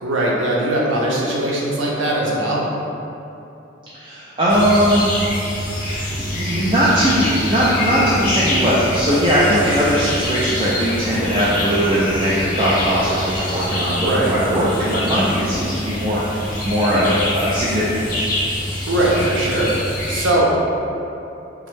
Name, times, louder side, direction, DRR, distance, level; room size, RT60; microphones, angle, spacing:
voice 1, 0.0-2.6 9.6-9.9 13.9-14.3 15.6-15.7 18.9-20.5, right 1 dB, 85° right, -4 dB, 0.6 m, -20 dB
voice 2, 4.0-5.1 5.7-18.1, equal, 25° right, -9 dB, 0.3 m, -19 dB
sound 1, 4.5-20.3, left 1 dB, 45° left, 0.6 m, -25 dB
3.4 x 2.0 x 3.1 m, 2.9 s
head